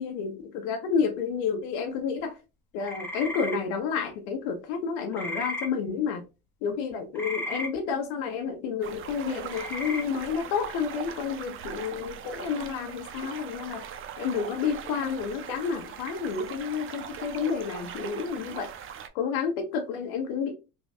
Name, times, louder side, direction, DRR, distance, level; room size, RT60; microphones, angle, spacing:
voice 1, 0.0-2.4 2.7-6.2 6.6-13.8 14.2-18.7 19.1-20.5, left 6 dB, 70° left, 0.8 m, -30 dB
sound 1, 2.8-3.6 5.1-5.7 7.1-7.7 9.5-10.0, equal, 5° left, 0.7 m, -34 dB
sound 2, 8.8-19.1, right 8 dB, 30° right, 0.4 m, -40 dB
3.1 x 2.3 x 2.6 m
hypercardioid pair, 80°, 44 cm